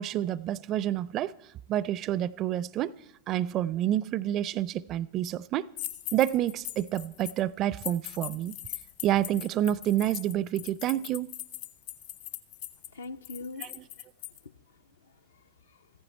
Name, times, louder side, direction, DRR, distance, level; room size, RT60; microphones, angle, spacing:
voice 1, 0.0-1.3 1.7-3.0 3.3-5.7 6.1-8.6 9.0-11.3 13.6-13.8, right 12 dB, 35° right, 0.4 m, -28 dB
sound 1, 5.8-7.4 7.8-14.4, left 13 dB, 50° left, 1.2 m, -40 dB
voice 2, 12.9-13.9 14.4-15.9, left 3 dB, 70° left, 0.6 m, -45 dB
15.0 x 15.0 x 4.5 m
figure-of-eight pair, 90°, 0 cm